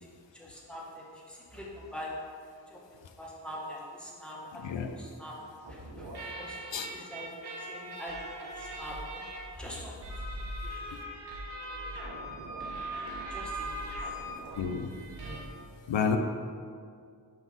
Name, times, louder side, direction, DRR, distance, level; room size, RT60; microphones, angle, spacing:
voice 1, 0.0-2.1 2.7-2.8 3.2-5.4 5.7-6.1 6.4-7.3 7.6-9.2 9.6-10.1 10.6-10.8 11.6-11.9 13.3-14.1, equal, ahead, -4 dB, 1.3 m, -44 dB
voice 2, 4.6-5.0 6.7-6.9 10.9-11.0 14.6-14.9 15.9-16.2, left 6 dB, 85° left, 5 dB, 0.6 m, -30 dB
sound 1, 5.6-15.4, right 2 dB, 65° right, 1.2 m, -42 dB
Wind instrument woodwind instrument, 10.1-14.4, equal, 40° left, 1.3 m, -41 dB
5.3 x 4.3 x 6.0 m, 2.2 s
wide cardioid pair, 85°, 43 cm